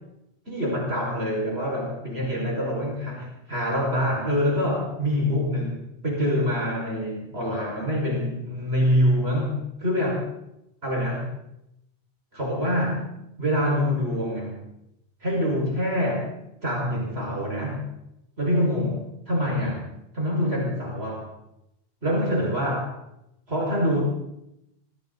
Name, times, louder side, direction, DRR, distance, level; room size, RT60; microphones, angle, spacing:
voice 1, 0.5-10.2 10.8-11.4 12.3-13.0 13.4-14.6 15.2-16.3 16.6-17.8 18.4-19.8 20.1-21.3 22.0-22.9 23.5-24.0, equal, 65° right, -2 dB, 6.3 m, -25 dB
26.0 x 24.0 x 4.2 m, 0.84 s
omnidirectional pair, 1.1 m